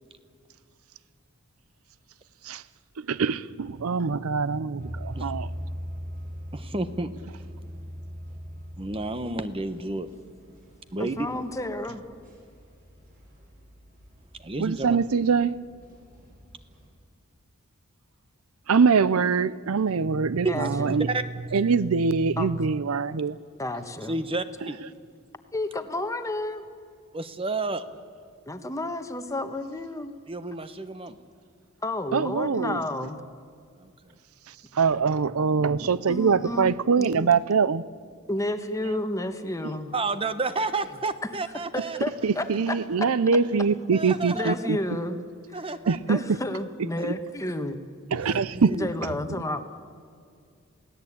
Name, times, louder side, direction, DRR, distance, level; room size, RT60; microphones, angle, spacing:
voice 1, 3.1-5.5 14.6-15.6 18.7-21.1 21.5-23.4 24.6-24.7 32.1-32.8 34.7-37.8 38.8-39.0 42.2-44.8 45.9-46.2 47.0-47.1 48.1-48.8, right 5 dB, 85° right, 0.6 m, -23 dB
sound 1, 4.8-16.9, equal, 40° right, 6.9 m, -42 dB
voice 2, 6.5-7.1 8.8-10.1 10.9-11.3 14.4-15.0 20.4-21.2 24.1-24.8 27.1-27.8 30.3-31.2 33.8-34.1 39.9-42.0 43.9-44.6 45.5-46.0 48.2-48.9, right 3 dB, 25° right, 1.1 m, -31 dB
voice 3, 11.0-12.0 20.4-20.9 22.4-22.5 23.6-24.1 25.5-26.6 28.5-30.1 31.8-33.2 36.1-36.7 37.0-37.3 38.3-39.9 41.7-43.1 44.3-45.2 46.1-47.8 48.7-49.6, left 1 dB, 15° left, 1.3 m, -31 dB
28.0 x 17.5 x 8.7 m
head